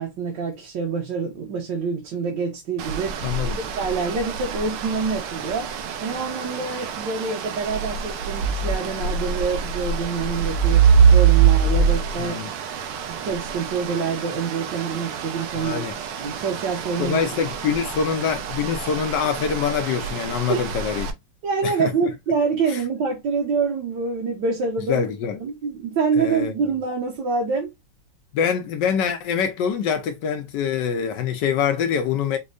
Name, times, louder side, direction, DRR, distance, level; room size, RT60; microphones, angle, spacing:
voice 1, 0.0-3.2 3.6-5.7 6.0-12.4 13.1-15.9 16.2-17.2 17.8-17.9 20.5-20.7 21.4-25.1 25.4-27.7, right 5 dB, 65° right, 1.5 m, -26 dB
sound 1, 2.8-21.1, right 6 dB, 85° right, 1.5 m, -24 dB
voice 2, 3.2-3.6 12.2-12.5 15.5-15.9 17.0-21.1 21.6-21.9 22.7-22.8 24.9-25.4 26.2-26.5 28.3-32.4, left 7 dB, 70° left, 1.1 m, -24 dB
5.4 x 2.1 x 2.4 m
omnidirectional pair, 2.4 m